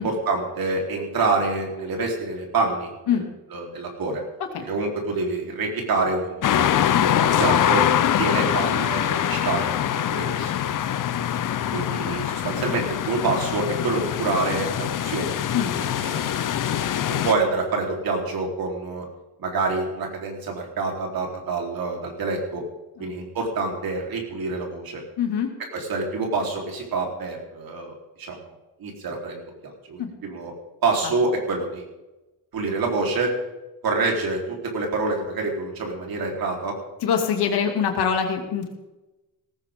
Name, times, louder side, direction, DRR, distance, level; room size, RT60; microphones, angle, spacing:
voice 1, 0.0-3.2 3.5-4.2 4.6-6.8 7.4-7.9 8.2-9.7 10.0-10.5 11.7-15.4 16.0-19.0 19.4-22.6 23.0-25.0 25.7-28.5 28.8-30.5 30.8-31.9 32.5-33.3 33.8-36.8, right 3 dB, 60° right, 0 dB, 4.0 m, -27 dB
sound 1, 6.4-17.3, left 10 dB, 50° left, 0.8 m, -24 dB
voice 2, 25.2-25.5 30.0-30.1 31.0-31.1 37.0-38.7, left 7 dB, 75° left, 3 dB, 2.7 m, -24 dB
18.0 x 15.0 x 3.8 m, 1.1 s
cardioid pair, 110°, 39 cm